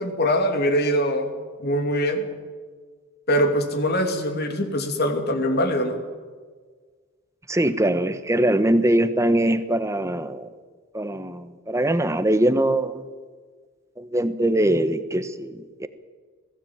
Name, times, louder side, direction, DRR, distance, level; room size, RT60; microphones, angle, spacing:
voice 1, 0.0-1.3 1.6-2.2 3.3-6.0, equal, 50° left, 6 dB, 2.8 m, -23 dB
voice 2, 7.5-10.5 10.9-13.0 14.0-15.9, right 1 dB, 15° right, 12 dB, 1.0 m, -22 dB
21.0 x 16.0 x 8.9 m, 1.5 s
head